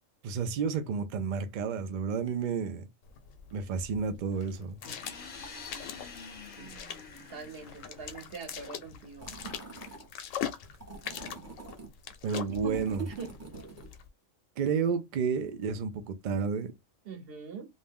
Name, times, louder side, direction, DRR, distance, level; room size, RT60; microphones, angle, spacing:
voice 1, 0.2-2.9 3.5-4.8 12.2-13.0 14.6-16.7, right 6 dB, 85° right, 0.4 m, -31 dB
sound 1, 3.0-14.1, left 9 dB, 80° left, 0.9 m, -43 dB
sound 2, 4.8-8.6, left 4 dB, 40° left, 0.7 m, -47 dB
voice 2, 7.3-9.3 12.6-12.7 13.0-13.3 17.0-17.6, right 6 dB, 50° right, 1.1 m, -42 dB
sound 3, 9.2-10.1 10.8-11.9 12.7-13.9, right 3 dB, 15° right, 0.8 m, -46 dB
2.6 x 2.2 x 3.4 m
omnidirectional pair, 1.4 m